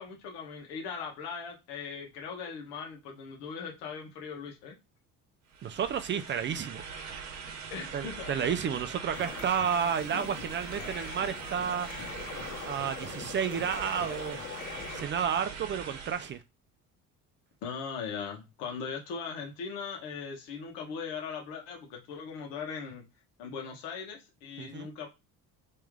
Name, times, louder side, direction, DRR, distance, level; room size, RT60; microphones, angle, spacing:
voice 1, 0.0-4.8 7.7-8.4 8.7-8.8 17.6-23.0 23.4-25.1, left 6 dB, 90° left, 1.4 m, -39 dB
sound 1, 5.5-16.4, right 6 dB, 50° right, 1.0 m, -42 dB
voice 2, 5.6-6.8 7.9-11.9 12.6-14.4 14.9-16.4 24.6-24.9, right 7 dB, 35° right, 0.4 m, -31 dB
sound 2, 9.1-15.0, left 5 dB, 40° left, 1.9 m, -42 dB
3.2 x 3.1 x 3.6 m
cardioid pair, 115°, 36 cm